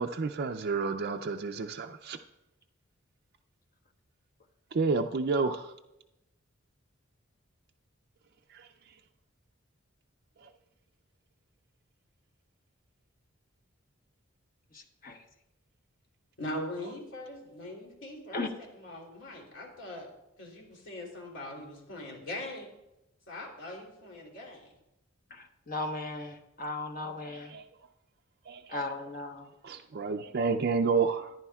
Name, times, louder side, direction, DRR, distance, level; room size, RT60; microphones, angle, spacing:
voice 1, 0.0-2.2 4.7-5.7 8.5-8.7 10.4-10.5 27.3-27.6 28.5-28.8 29.6-31.3, right 4 dB, 50° right, 4 dB, 0.4 m, -30 dB
voice 2, 14.7-15.2 18.3-18.5 25.3-27.5 28.7-29.5, left 2 dB, 45° left, 5 dB, 1.1 m, -37 dB
voice 3, 16.4-18.4 18.7-20.1 20.4-22.7 23.3-24.7, left 1 dB, 65° left, 0 dB, 3.0 m, -41 dB
14.0 x 10.5 x 2.3 m, 0.89 s
head